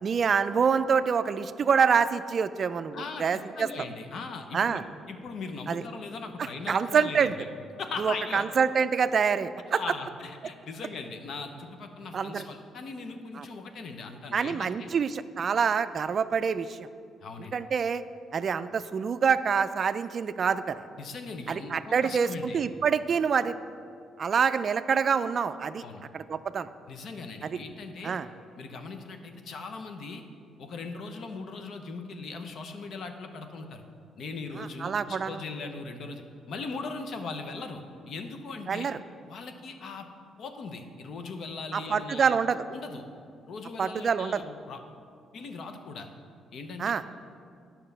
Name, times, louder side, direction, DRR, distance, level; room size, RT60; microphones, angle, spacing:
voice 1, 0.0-3.7 4.5-4.8 5.7-5.8 6.7-7.3 8.0-9.8 12.1-12.4 13.4-13.5 14.3-16.9 17.5-18.0 18.3-20.8 21.5-23.6 24.2-25.8 26.1-26.7 27.4-27.5 28.0-28.3 34.6-35.4 38.7-39.0 41.7-42.6 43.8-44.4 46.8-47.0, right 6 dB, 50° right, 13 dB, 0.3 m, -26 dB
voice 2, 2.9-4.8 5.1-7.5 7.8-8.4 9.8-14.9 17.2-17.6 21.0-22.6 25.8-26.0 26.9-28.2 28.6-30.2 30.6-33.8 34.2-38.9 39.3-40.1 40.4-42.4 42.7-43.1 43.5-44.8 45.3-46.1 46.5-46.9, left 4 dB, 65° left, 6 dB, 0.8 m, -39 dB
9.2 x 5.8 x 5.4 m, 2.4 s
cardioid pair, 90°, 0 cm